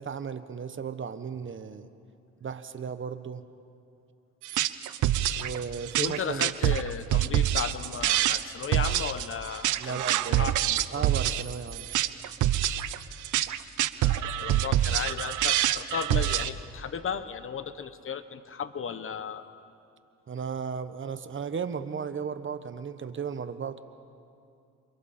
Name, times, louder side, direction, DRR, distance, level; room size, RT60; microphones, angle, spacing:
voice 1, 0.0-1.9 2.4-3.4 5.4-6.5 9.8-10.6 10.9-11.9 20.3-23.8, right 6 dB, 40° right, 11 dB, 1.2 m, -35 dB
sound 1, 4.4-16.5, right 13 dB, 80° right, 0.8 m, -26 dB
voice 2, 6.0-10.0 10.3-11.1 14.0-19.5, left 6 dB, 45° left, 11 dB, 1.1 m, -35 dB
30.0 x 27.0 x 4.4 m, 2.6 s
cardioid pair, 90°, 30 cm